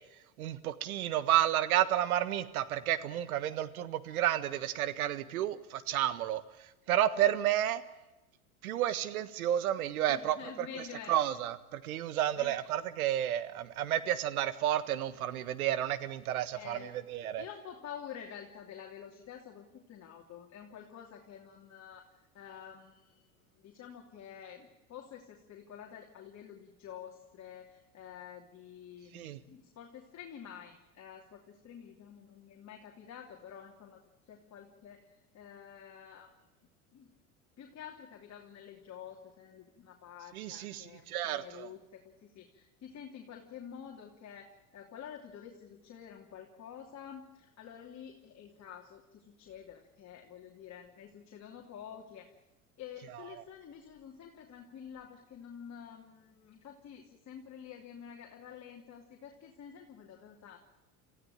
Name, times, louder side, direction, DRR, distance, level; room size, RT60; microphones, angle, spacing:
voice 1, 0.4-6.4 6.9-7.8 8.6-10.7 11.1-17.4 29.1-29.4 40.3-41.7, right 12 dB, 75° right, 13 dB, 1.6 m, -31 dB
voice 2, 10.1-11.2 12.4-12.7 16.5-16.9 17.4-22.1 22.3-34.0 34.3-36.3 36.9-37.1 37.6-52.3 52.8-60.6, left 8 dB, 40° left, 0 dB, 3.1 m, -49 dB
27.0 x 15.5 x 9.0 m, 1.0 s
hypercardioid pair, 85°, 44 cm